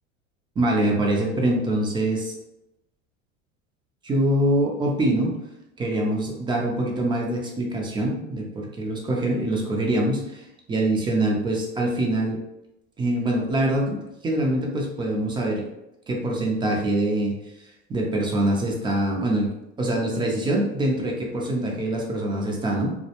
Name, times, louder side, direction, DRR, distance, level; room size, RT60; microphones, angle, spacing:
voice 1, 0.6-2.3 4.0-5.4 5.8-12.4 13.0-15.7 16.1-17.3 17.9-19.5 19.8-22.9, right 1 dB, 15° right, -1 dB, 0.4 m, -24 dB
2.3 x 2.1 x 2.8 m, 0.88 s
supercardioid pair, 110°, 37 cm